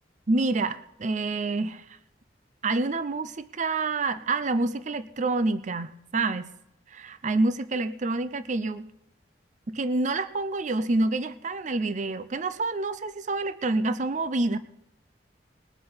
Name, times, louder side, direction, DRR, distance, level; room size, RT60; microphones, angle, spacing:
voice 1, 0.3-1.8 2.6-6.5 6.9-8.9 9.7-14.6, right 2 dB, 45° right, 13 dB, 0.6 m, -27 dB
20.5 x 7.8 x 5.6 m, 0.84 s
head